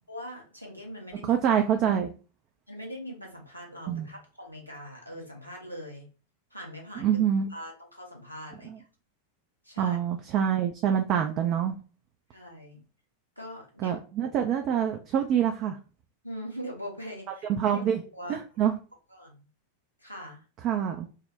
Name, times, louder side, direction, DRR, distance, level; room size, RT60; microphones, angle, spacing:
voice 1, 0.1-1.3 2.7-6.1 6.5-7.1 7.5-8.9 9.6-10.0 12.3-12.8 13.4-14.3 16.2-17.5 18.1-18.4 19.1-19.5 20.0-20.4, equal, 90° left, -1 dB, 0.8 m, -42 dB
voice 2, 1.3-2.1 3.9-4.1 7.0-7.5 8.7-8.8 9.8-11.7 13.8-15.8 17.5-18.0 18.3-18.7 20.6-21.1, right 9 dB, 35° right, 4 dB, 0.3 m, -26 dB
3.5 x 2.1 x 2.6 m, 0.34 s
figure-of-eight pair, 90°, 0 cm